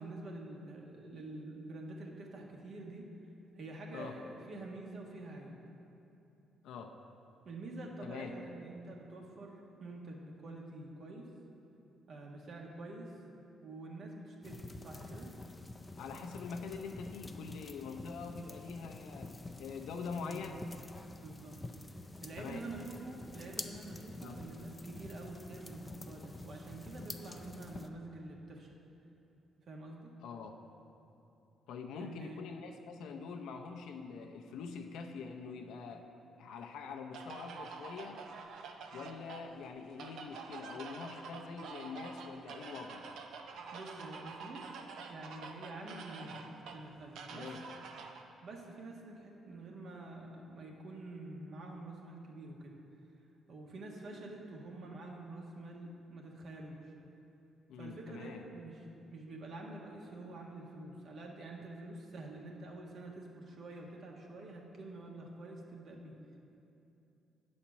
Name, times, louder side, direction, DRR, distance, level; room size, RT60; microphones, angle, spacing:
voice 1, 0.0-3.1 3.5-5.5 7.4-11.3 12.1-13.1 13.6-15.3 20.1-20.4 21.2-21.6 22.2-28.7 29.6-30.2 32.0-32.4 43.7-44.7 45.1-47.5 48.4-52.8 53.5-56.9 57.8-58.8 59.1-66.1, right 2 dB, 60° right, 0 dB, 1.3 m, -47 dB
voice 2, 6.6-6.9 8.0-8.3 16.0-20.6 22.4-22.7 24.2-24.4 30.2-30.5 31.7-36.1 36.4-38.2 38.9-43.1 47.3-47.6 57.7-58.4, left 5 dB, 85° left, 4 dB, 0.6 m, -44 dB
sound 1, 14.4-27.9, left 2 dB, 20° left, 0.4 m, -48 dB
sound 2, 37.1-48.2, right 4 dB, 80° right, 0.6 m, -48 dB
8.8 x 4.3 x 7.0 m, 2.8 s
cardioid pair, 90°, 0 cm